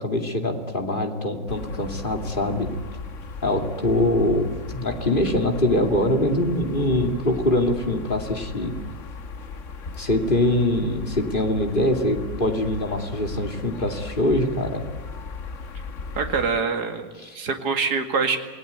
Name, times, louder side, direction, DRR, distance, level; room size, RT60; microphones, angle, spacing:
voice 1, 0.0-2.7 3.4-8.7 10.0-14.8 17.2-17.4, left 1 dB, 30° left, 5 dB, 2.7 m, -23 dB
sound 1, 1.5-16.5, left 4 dB, 45° left, 1.5 m, -37 dB
voice 2, 16.1-17.1 17.3-18.4, right 5 dB, 65° right, 5 dB, 2.6 m, -24 dB
28.0 x 18.5 x 9.6 m, 1.4 s
omnidirectional pair, 1.9 m